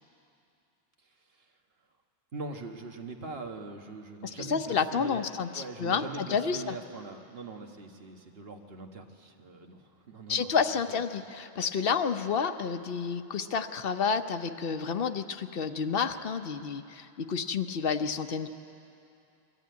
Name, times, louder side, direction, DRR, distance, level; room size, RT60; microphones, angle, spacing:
voice 1, 1.0-1.6 2.3-11.0, right 3 dB, 70° right, 3 dB, 1.6 m, -42 dB
voice 2, 4.5-6.7 10.3-18.5, left 6 dB, 65° left, 9 dB, 0.9 m, -30 dB
22.5 x 14.0 x 9.3 m, 2.7 s
omnidirectional pair, 1.1 m